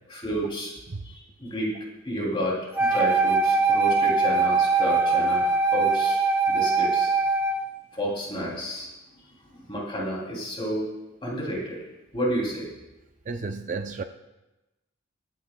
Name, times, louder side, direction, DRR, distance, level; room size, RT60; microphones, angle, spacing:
voice 1, 0.1-0.7 1.0-1.8 2.0-6.2 6.5-7.1 7.9-8.9 9.5-10.9 11.2-11.8 12.1-12.7, equal, 25° left, -2 dB, 2.7 m, -30 dB
Wind instrument woodwind instrument, 2.8-7.7, right 4 dB, 10° right, 0.8 m, -22 dB
voice 2, 13.3-14.0, right 4 dB, 40° right, 7 dB, 0.5 m, -32 dB
24.0 x 9.5 x 2.2 m, 0.99 s
head